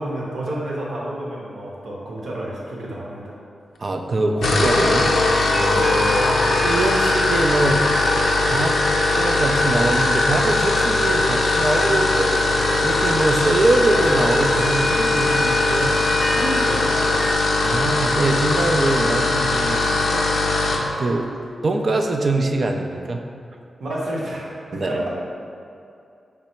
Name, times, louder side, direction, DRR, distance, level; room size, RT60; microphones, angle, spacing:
voice 1, 0.0-3.4 5.7-6.3 16.3-17.2 23.8-24.5 24.7-25.1, right 1 dB, 80° right, -5 dB, 0.8 m, -29 dB
voice 2, 3.8-5.1 5.4-5.9 6.6-7.9 8.5-8.8 9.2-12.3 12.8-16.0 17.6-20.3 21.0-21.3 21.6-23.2 24.7-25.0, right 2 dB, 55° right, 4 dB, 0.4 m, -23 dB
sound 1, 4.3-20.9, left 2 dB, 80° left, 0.5 m, -20 dB
sound 2, 4.4-17.3, equal, 5° right, 0.5 m, -31 dB
5.3 x 2.0 x 4.3 m, 2.5 s
cardioid pair, 65°, 0 cm